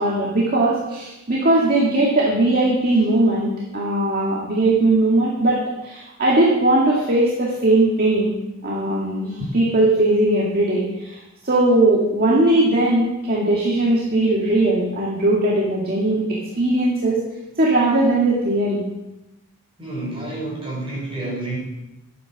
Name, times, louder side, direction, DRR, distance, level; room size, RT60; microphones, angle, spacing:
voice 1, 0.0-8.3 8.6-11.2 11.4-17.2 17.6-18.8, right 2 dB, 40° right, -5 dB, 2.2 m, -19 dB
voice 2, 19.8-21.6, right 2 dB, 25° right, -5 dB, 5.6 m, -29 dB
12.0 x 9.2 x 6.1 m, 0.96 s
head